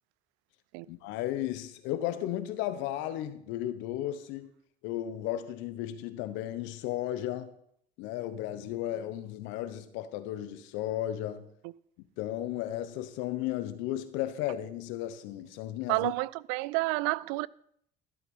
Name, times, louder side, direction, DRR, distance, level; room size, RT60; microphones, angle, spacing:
voice 1, 0.9-4.5 4.8-7.5 8.0-11.5 12.2-16.1, left 13 dB, 75° left, 1.2 m, -34 dB
voice 2, 15.9-17.5, right 22 dB, 80° right, 0.4 m, -29 dB
13.5 x 8.1 x 5.5 m
supercardioid pair, 80°, 19 cm